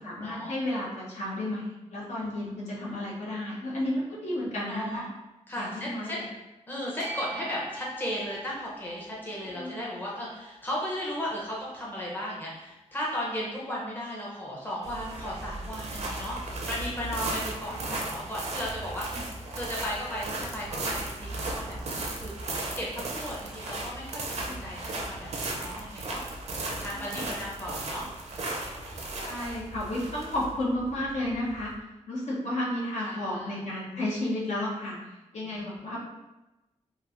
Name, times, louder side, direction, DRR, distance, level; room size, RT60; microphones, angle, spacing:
voice 1, 0.0-5.1 5.6-6.2 9.6-9.8 17.7-18.0 24.5-24.6 26.8-27.3 29.2-31.7 32.1-35.0 35.3-36.0, left 1 dB, 70° left, -6 dB, 0.9 m, -32 dB
voice 2, 2.2-2.5 4.7-5.0 5.5-6.2 6.7-22.3 22.7-24.8 25.0-26.2 26.6-28.1 33.0-33.6 35.4-36.0, equal, 15° left, -5 dB, 0.7 m, -36 dB
sound 1, 7.0-13.2, right 2 dB, 90° left, 1.2 m, -46 dB
sound 2, 14.8-31.7, right 2 dB, 65° right, 0.5 m, -36 dB
3.0 x 2.6 x 2.5 m, 1.0 s
wide cardioid pair, 125°, 12 cm